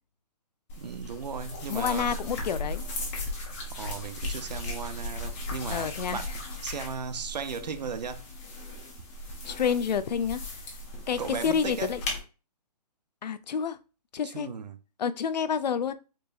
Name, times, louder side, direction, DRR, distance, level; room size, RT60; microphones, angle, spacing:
sound 1, 0.7-12.2, left 2 dB, 20° left, 0.9 m, -37 dB
voice 1, 0.8-2.2 3.7-6.3 6.6-8.2 11.2-12.0 14.2-14.8, right 6 dB, 85° right, 0.7 m, -36 dB
voice 2, 1.7-2.8 5.7-6.2 9.4-10.4 11.1-12.0 13.2-13.8 14.1-14.5 15.0-15.9, left 7 dB, 90° left, 0.5 m, -28 dB
4.6 x 3.0 x 2.5 m
hypercardioid pair, 165°, 21 cm